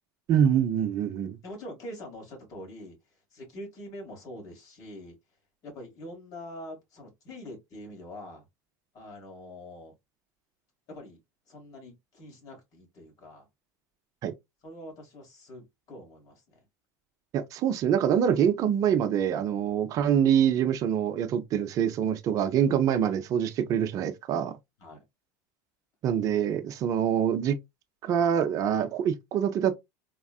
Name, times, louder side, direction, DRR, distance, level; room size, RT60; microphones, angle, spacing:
voice 1, 0.3-1.4 14.2-14.3 17.3-24.5 26.0-27.6 28.0-29.8, right 9 dB, 40° right, 0.5 m, -25 dB
voice 2, 1.4-3.0 3.3-5.2 5.6-8.4 8.9-9.9 10.9-11.2 11.5-13.5 14.6-16.6 22.9-23.0 24.8-25.0, left 1 dB, 40° left, 2.0 m, -44 dB
3.5 x 2.3 x 2.3 m
supercardioid pair, 125°, 9 cm